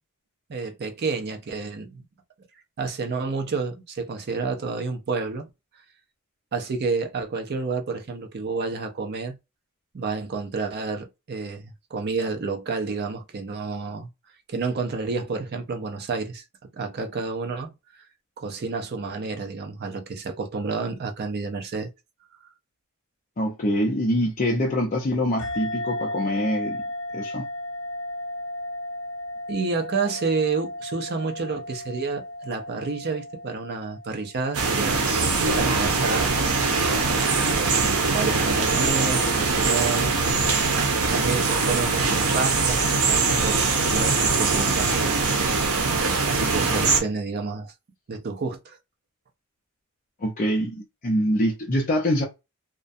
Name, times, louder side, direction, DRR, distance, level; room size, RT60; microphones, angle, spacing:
voice 1, 0.5-2.0 2.8-5.5 6.5-9.4 9.9-14.1 14.5-16.4 16.7-18.0 18.4-21.9 29.5-35.0 35.5-36.4 37.5-40.3 41.1-45.2 46.3-47.7 48.1-48.8, right 4 dB, 50° right, 0.5 m, -29 dB
voice 2, 23.4-26.8 27.1-27.5 50.2-52.2, equal, 35° left, 0.5 m, -24 dB
sound 1, 25.4-34.4, left 1 dB, 90° left, 0.7 m, -34 dB
sound 2, 34.5-47.0, right 4 dB, 85° right, 0.7 m, -22 dB
2.4 x 2.2 x 2.5 m
head